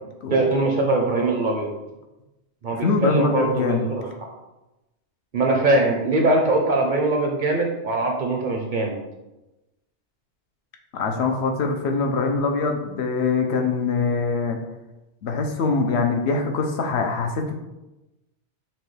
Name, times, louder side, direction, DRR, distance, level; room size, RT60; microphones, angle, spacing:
voice 1, 0.3-1.7 2.6-4.1 5.3-9.0, right 2 dB, 50° right, 1 dB, 0.6 m, -22 dB
voice 2, 2.7-3.9 10.9-14.6 15.2-17.5, left 4 dB, 70° left, 3 dB, 0.8 m, -23 dB
5.7 x 2.3 x 3.2 m, 1.0 s
omnidirectional pair, 1.2 m